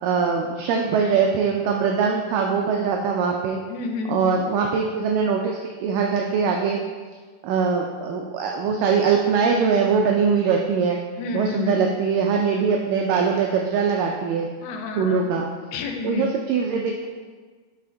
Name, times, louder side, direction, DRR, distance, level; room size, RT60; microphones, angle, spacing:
voice 1, 0.0-3.6 4.1-6.8 7.4-11.0 11.3-14.5 15.0-15.5 16.0-17.1, right 5 dB, 85° right, 1 dB, 1.9 m, -22 dB
voice 2, 3.7-4.2 11.2-11.9 14.6-15.3 15.7-16.3, left 3 dB, 90° left, 5 dB, 2.6 m, -29 dB
5.7 x 5.6 x 3.8 m, 1.4 s
omnidirectional pair, 4.4 m